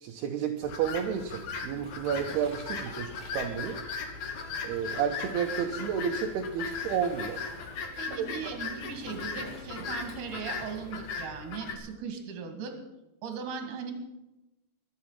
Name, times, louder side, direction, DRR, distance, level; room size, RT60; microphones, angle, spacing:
voice 1, 0.0-3.8 4.6-7.4 8.1-8.3, right 8 dB, 75° right, 3 dB, 2.6 m, -31 dB
sound 1, 0.6-11.7, left 5 dB, 60° left, 2.0 m, -38 dB
Waves surf, 0.8-11.2, equal, 5° left, 5.7 m, -49 dB
voice 2, 8.0-12.8 13.2-13.9, right 5 dB, 50° right, 5 dB, 3.2 m, -38 dB
23.0 x 8.8 x 5.7 m, 0.98 s
omnidirectional pair, 5.3 m